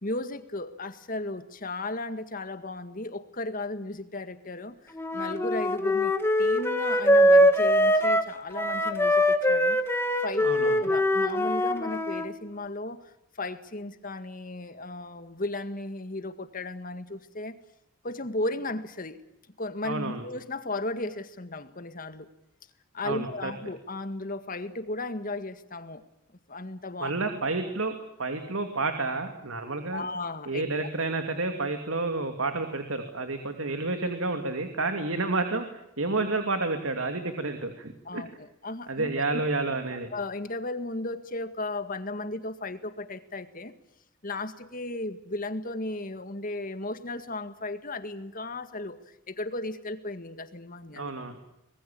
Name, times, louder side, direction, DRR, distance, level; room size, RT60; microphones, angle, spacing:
voice 1, 0.0-6.1 6.4-13.1 13.4-17.6 18.0-19.2 19.6-22.3 22.9-26.0 26.5-27.1 29.9-30.6 38.1-39.1 40.1-43.7 44.2-51.1, left 2 dB, 40° left, 10 dB, 1.9 m, -35 dB
Wind instrument woodwind instrument, 5.0-12.3, equal, 10° left, 2.0 m, -23 dB
voice 2, 10.4-10.9 19.8-20.2 23.0-23.5 27.0-27.9 28.2-30.0 30.5-35.7 36.0-38.2 38.9-40.1 50.9-51.4, right 3 dB, 75° right, 6 dB, 2.6 m, -30 dB
25.5 x 21.0 x 8.6 m, 0.84 s
head